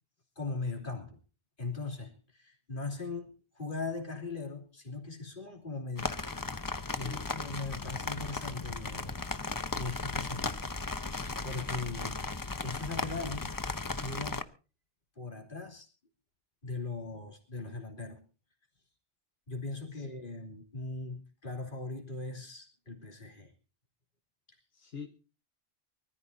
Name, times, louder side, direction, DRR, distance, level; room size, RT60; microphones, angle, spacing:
voice 1, 0.4-1.2 1.6-6.3 6.5-10.9 11.4-12.2 12.6-13.6 14.0-14.5 15.2-15.9 16.6-18.2 19.5-23.5, left 3 dB, 50° left, 3.3 m, -39 dB
sound 1, 6.0-14.4, left 3 dB, 25° left, 0.6 m, -36 dB
voice 2, 6.9-7.4 19.9-20.1 24.7-25.2, left 6 dB, 65° left, 1.5 m, -46 dB
24.5 x 14.0 x 2.7 m
omnidirectional pair, 1.1 m